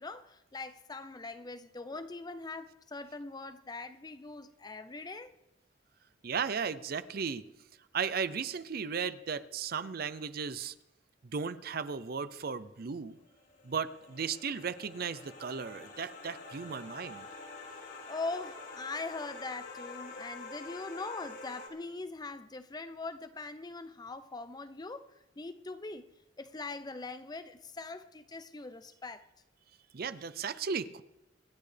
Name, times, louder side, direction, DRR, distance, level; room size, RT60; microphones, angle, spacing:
voice 1, 0.0-5.4 18.1-25.1 25.4-26.0 26.4-29.2, left 3 dB, 20° left, 0.5 m, -41 dB
voice 2, 6.2-7.5 7.9-10.7 11.3-13.2 13.6-17.3 29.9-31.0, right 6 dB, 50° right, 0.5 m, -35 dB
sound 1, 13.2-21.7, left 3 dB, 55° left, 3.4 m, -47 dB
26.0 x 10.5 x 3.4 m
head